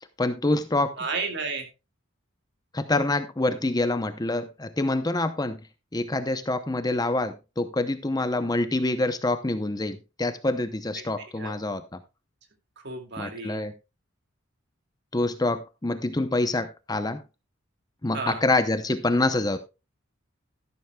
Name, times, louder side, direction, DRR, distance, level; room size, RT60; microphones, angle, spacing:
voice 1, 0.2-0.9 2.7-5.6 5.9-11.8 13.2-13.7 15.1-17.2 18.0-19.6, left 2 dB, 20° left, 10 dB, 0.7 m, -26 dB
voice 2, 0.8-1.7 11.0-11.5 12.8-13.7 18.1-18.4, right 4 dB, 60° right, 5 dB, 2.3 m, -33 dB
12.5 x 11.5 x 2.3 m, 0.27 s
head